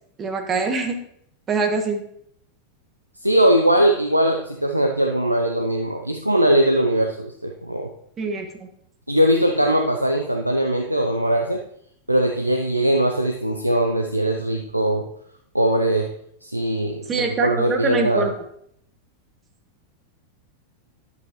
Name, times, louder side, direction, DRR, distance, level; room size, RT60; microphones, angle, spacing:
voice 1, 0.2-1.0 1.5-2.1 8.2-8.7 17.1-18.3, right 4 dB, 25° right, 5 dB, 1.5 m, -24 dB
voice 2, 3.2-7.9 9.1-11.6 12.1-15.1 15.5-16.1 16.4-17.1 17.4-18.3, right 1 dB, 85° right, 3 dB, 0.6 m, -20 dB
10.5 x 8.0 x 3.1 m, 0.70 s
figure-of-eight pair, 90°, 0 cm